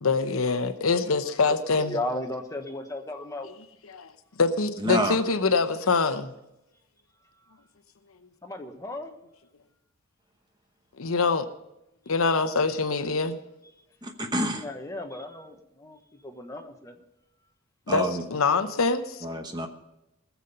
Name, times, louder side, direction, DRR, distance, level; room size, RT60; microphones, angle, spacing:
voice 1, 0.0-2.0 3.9-4.1 4.4-6.3 11.0-11.5 12.1-13.4 17.9-19.2, left 4 dB, 85° left, 0.9 m, -24 dB
voice 2, 1.8-3.5 8.4-9.1 14.5-17.0, left 1 dB, 15° left, 1.2 m, -35 dB
voice 3, 4.8-5.2 14.0-14.6 17.9-18.2 19.2-19.7, right 1 dB, 20° right, 1.0 m, -28 dB
19.5 x 7.2 x 5.4 m
head